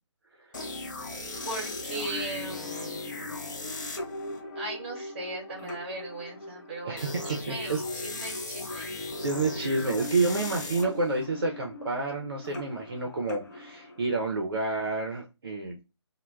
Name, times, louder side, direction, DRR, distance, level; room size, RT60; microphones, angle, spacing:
sound 1, 0.5-14.3, left 2 dB, 40° left, 0.5 m, -38 dB
voice 1, 1.4-3.2 4.5-9.1, right 2 dB, 25° right, 1 dB, 0.8 m, -38 dB
voice 2, 7.5-7.8 9.2-15.8, right 3 dB, 50° right, 2 dB, 0.5 m, -29 dB
2.1 x 2.1 x 3.2 m, 0.27 s
figure-of-eight pair, 145°, 15 cm